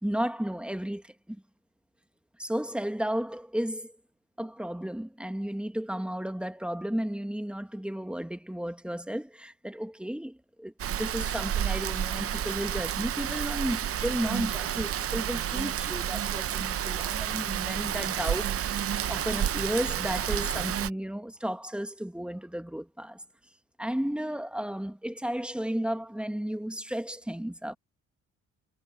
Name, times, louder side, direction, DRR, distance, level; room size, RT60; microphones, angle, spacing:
voice 1, 0.0-1.4 2.4-3.9 4.4-18.8 19.1-23.2 23.8-27.8, equal, 5° right, 1.6 m, -33 dB
Rain, 10.8-20.9, right 10 dB, 50° right, 0.7 m, -30 dB
cardioid pair, 90°, 30 cm